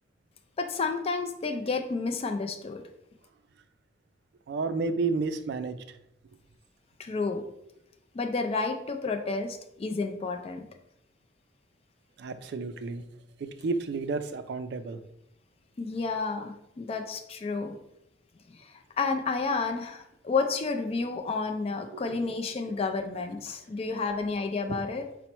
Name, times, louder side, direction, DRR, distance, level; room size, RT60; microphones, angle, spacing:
voice 1, 0.6-2.8 7.0-7.4 8.1-10.6 15.8-17.7 18.5-25.0, left 4 dB, 35° left, 6 dB, 0.3 m, -31 dB
voice 2, 4.5-5.8 12.2-13.0 13.4-15.0 21.9-22.2 24.7-24.8, right 4 dB, 65° right, 9 dB, 0.3 m, -31 dB
4.3 x 2.1 x 4.2 m, 0.81 s
head